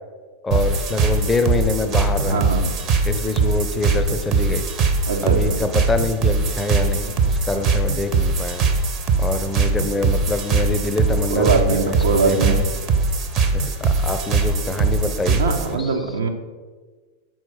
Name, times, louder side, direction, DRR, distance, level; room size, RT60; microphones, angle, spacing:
voice 1, 0.4-2.5 3.0-4.6 5.2-8.6 9.2-12.6 13.5-16.0, left 3 dB, 15° left, 7 dB, 0.6 m, -25 dB
sound 1, 0.5-15.7, right 4 dB, 35° right, 0.8 m, -21 dB
voice 2, 2.2-2.7 5.1-5.6 11.3-12.7 15.4-16.3, right 4 dB, 65° right, 4 dB, 0.8 m, -21 dB
6.2 x 4.6 x 5.4 m, 1.4 s
figure-of-eight pair, 90°, 0 cm